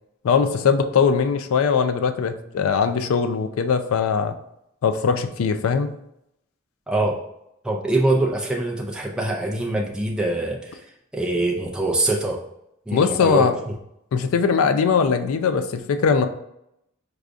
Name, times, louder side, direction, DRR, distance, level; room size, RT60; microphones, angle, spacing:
voice 1, 0.2-4.4 4.8-5.9 12.9-13.6 14.1-16.3, left 6 dB, 75° left, 9 dB, 0.3 m, -20 dB
voice 2, 6.9-7.2 7.6-10.8 11.1-12.4 12.9-13.7, right 2 dB, 5° right, -2 dB, 0.4 m, -24 dB
4.8 x 2.3 x 2.5 m, 0.79 s
head